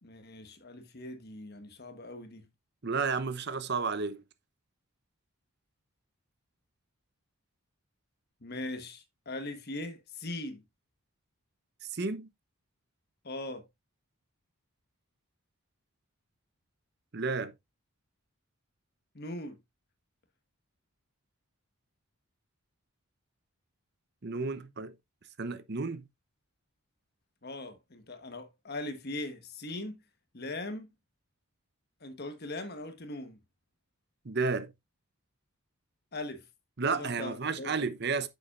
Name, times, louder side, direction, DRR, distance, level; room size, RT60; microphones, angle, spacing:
voice 1, 0.0-2.5 8.4-10.6 13.2-13.7 19.1-19.6 27.4-30.0 30.3-30.9 32.0-33.4 36.1-36.4 36.9-37.7, left 2 dB, 45° left, 1.2 m, -40 dB
voice 2, 2.8-4.2 11.9-12.3 17.1-17.5 24.2-24.9 25.4-26.0 34.2-34.7 36.8-38.3, right 4 dB, 50° right, 0.8 m, -32 dB
9.4 x 7.1 x 2.5 m
head